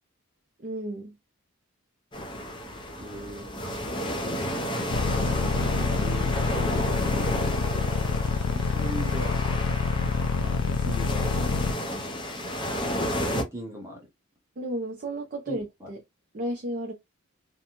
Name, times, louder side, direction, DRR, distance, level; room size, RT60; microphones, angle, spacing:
voice 1, 0.6-1.1 14.6-16.0 16.3-16.9, right 1 dB, 40° right, 0.5 m, -33 dB
sound 1, 2.1-13.4, equal, 20° left, 0.6 m, -31 dB
voice 2, 3.0-3.5 5.5-6.3 8.5-9.4 10.4-11.4 13.2-14.1 15.5-15.9, right 1 dB, 15° right, 0.8 m, -38 dB
sound 2, 4.9-11.7, left 5 dB, 85° left, 0.4 m, -26 dB
2.5 x 2.2 x 2.9 m
head